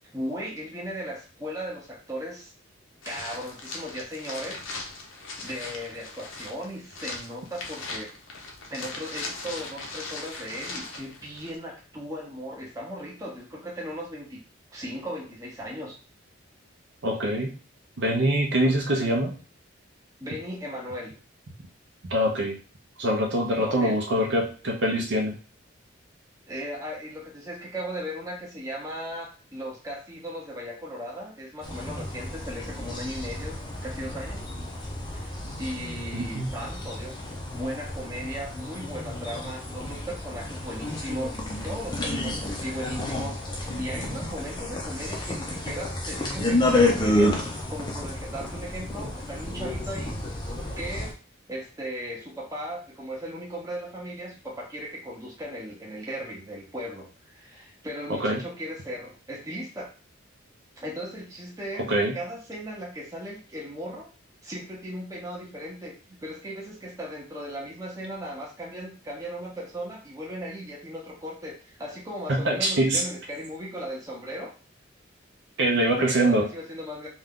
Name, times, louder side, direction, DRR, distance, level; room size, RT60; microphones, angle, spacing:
voice 1, 0.1-2.5 3.0-4.6 5.4-8.1 8.7-14.4 14.7-16.0 18.6-19.0 20.2-21.2 23.6-24.0 26.5-34.5 35.0-37.2 37.5-41.4 41.6-47.4 47.7-50.1 50.8-51.2 51.5-59.9 60.8-64.1 64.4-65.9 66.2-74.5 75.9-77.1, equal, 15° right, -3 dB, 0.7 m, -37 dB
sound 1, 3.0-11.6, left 3 dB, 75° left, 0.7 m, -39 dB
voice 2, 17.0-17.5 18.0-19.3 22.0-22.6 23.0-25.3 36.1-36.5 58.1-58.4 61.9-62.1 72.3-73.0 75.6-76.5, right 1 dB, 60° right, 1 dB, 0.6 m, -24 dB
sound 2, 31.6-51.1, left 1 dB, 20° left, 0.5 m, -30 dB
2.6 x 2.3 x 3.5 m, 0.36 s
head